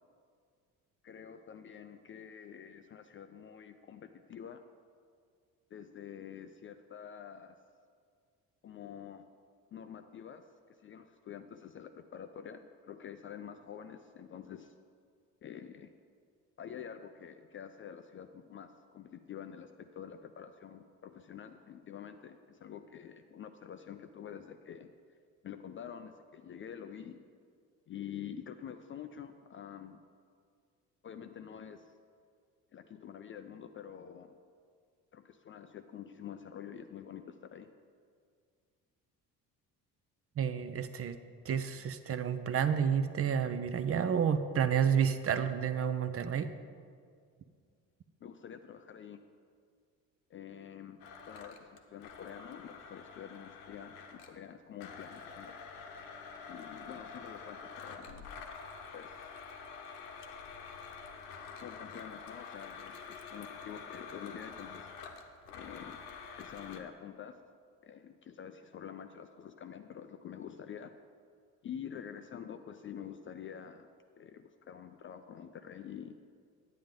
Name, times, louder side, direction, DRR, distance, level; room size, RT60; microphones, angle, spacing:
voice 1, 1.0-4.6 5.7-7.6 8.6-9.3 9.7-14.8 15.4-15.9 16.6-24.9 25.4-27.2 27.9-30.0 31.0-31.9 32.7-34.4 35.1-37.7 48.2-49.2 50.3-51.0 51.3-55.6 56.5-58.3 58.9-59.3 61.6-64.9 65.5-66.0 66.4-67.4 67.8-70.9 71.6-73.9 74.2-76.2, left 8 dB, 30° left, 8 dB, 0.4 m, -47 dB
voice 2, 40.4-41.2 41.4-46.5, right 7 dB, 30° right, 10 dB, 0.5 m, -30 dB
Domestic sounds home sounds, 51.0-54.4 54.8-66.8, left 5 dB, 75° left, 1.0 m, -47 dB
10.0 x 9.2 x 3.7 m, 2.1 s
figure-of-eight pair, 50°, 47 cm